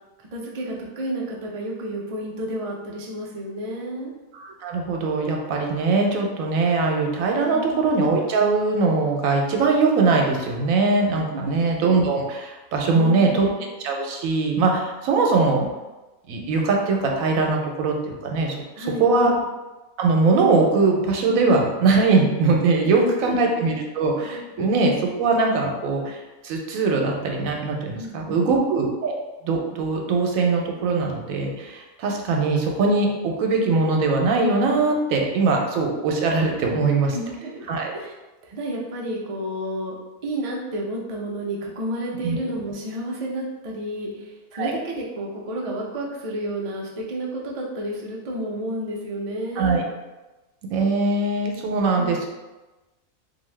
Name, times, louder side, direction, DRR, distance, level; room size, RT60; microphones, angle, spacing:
voice 1, 0.2-4.1 7.5-8.0 11.4-11.5 12.9-13.5 18.8-19.4 22.8-23.3 24.6-24.7 28.0-28.6 37.1-37.6 37.9-38.1 38.4-39.9 40.2-49.8 51.9-52.1, right 1 dB, 70° right, -2 dB, 0.3 m, -31 dB
voice 2, 4.3-13.5 13.8-15.7 16.3-19.3 20.0-29.2 29.4-37.2 37.7-37.9 42.2-42.4 44.5-44.7 49.6-49.8 50.7-52.3, right 3 dB, 90° right, 1 dB, 1.0 m, -21 dB
2.7 x 2.5 x 3.1 m, 1.1 s
omnidirectional pair, 1.4 m